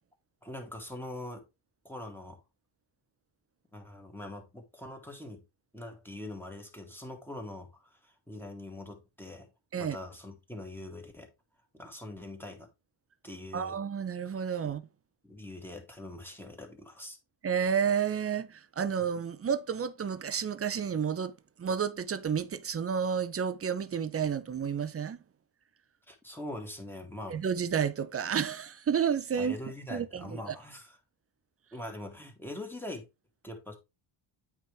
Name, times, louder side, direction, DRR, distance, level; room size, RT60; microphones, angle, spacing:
voice 1, 0.4-1.4 1.8-2.4 3.7-5.4 5.7-9.5 9.7-11.3 11.7-12.7 13.2-13.8 14.6-14.7 15.2-17.2 26.1-27.4 29.4-31.0 31.7-33.1 33.4-33.8, left 1 dB, 5° left, 2.2 m, -43 dB
voice 2, 13.5-14.8 17.4-25.2 27.3-29.6 29.9-30.4, right 7 dB, 30° right, 0.7 m, -31 dB
8.8 x 4.8 x 3.5 m
cardioid pair, 110°, 49 cm